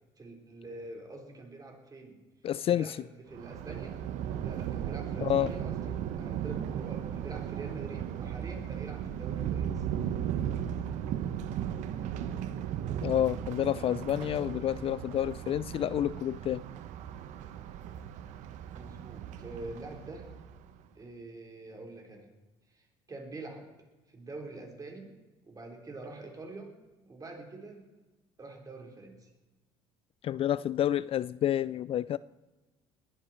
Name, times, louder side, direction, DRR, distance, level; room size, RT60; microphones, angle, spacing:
voice 1, 0.2-2.2 2.7-4.0 4.4-9.9 14.8-15.1 18.7-20.3 20.9-22.3 22.7-23.7 24.1-25.2 25.4-26.7 27.0-27.8 28.4-29.3, right 2 dB, 30° right, 2 dB, 4.3 m, -45 dB
voice 2, 2.4-2.8 5.2-5.5 13.0-16.6 30.2-32.2, left 11 dB, 45° left, 18 dB, 0.4 m, -29 dB
Thunder, 3.3-20.7, right 9 dB, 70° right, 1.2 m, -36 dB
20.5 x 11.0 x 4.5 m, 1.1 s
supercardioid pair, 75°, 13 cm